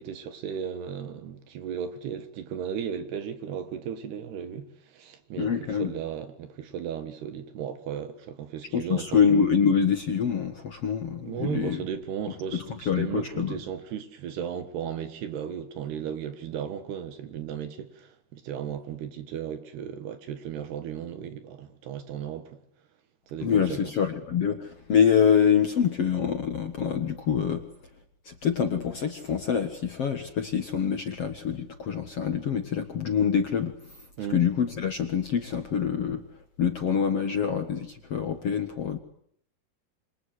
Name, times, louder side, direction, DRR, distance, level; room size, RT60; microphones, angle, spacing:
voice 1, 0.0-9.2 11.2-22.5 23.3-23.8 34.2-34.4, right 8 dB, 75° right, 3.8 m, -35 dB
voice 2, 5.4-5.9 8.7-11.8 12.5-13.6 23.4-27.6 28.3-33.7 34.3-36.2 36.6-39.0, left 7 dB, 55° left, 1.9 m, -25 dB
27.5 x 25.5 x 8.2 m
omnidirectional pair, 4.7 m